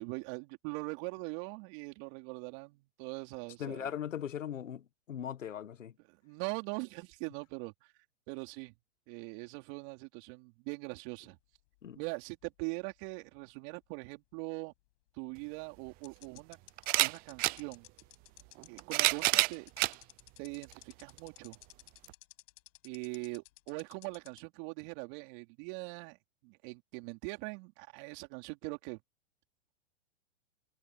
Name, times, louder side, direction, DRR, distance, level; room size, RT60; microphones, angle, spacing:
voice 1, 0.0-3.9 6.1-7.9 8.3-8.7 9.1-11.4 12.0-14.7 15.2-16.6 17.0-17.9 18.7-19.7 20.4-21.6 22.8-26.2 26.4-29.0, right 31 dB, 40° right, 4.0 m, -42 dB
voice 2, 3.6-5.9 11.8-12.0, left 9 dB, 80° left, 1.7 m, -39 dB
sound 1, 11.5-13.1 13.4-13.5 15.3-15.4 16.0-24.4, left 23 dB, 50° left, 6.6 m, -55 dB
sound 2, 15.4-15.5 16.8-17.6 18.6-20.0 20.7-20.8 22.1-22.2, right 24 dB, 25° right, 0.5 m, -28 dB
hypercardioid pair, 125°, 37 cm